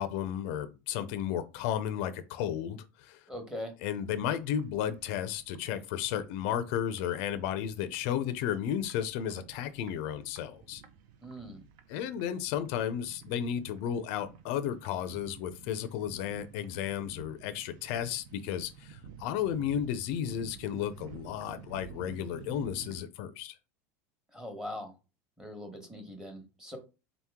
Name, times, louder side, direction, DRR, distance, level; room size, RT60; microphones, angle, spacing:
voice 1, 0.0-3.2 3.8-10.8 11.9-23.6, left 9 dB, 60° left, 0.4 m, -33 dB
voice 2, 3.3-3.7 11.2-11.6 24.3-24.9 25.4-26.8, left 1 dB, 5° right, 1.1 m, -41 dB
sound 1, 4.0-23.0, right 7 dB, 55° right, 0.6 m, -52 dB
3.9 x 2.9 x 3.6 m
supercardioid pair, 135°, 8 cm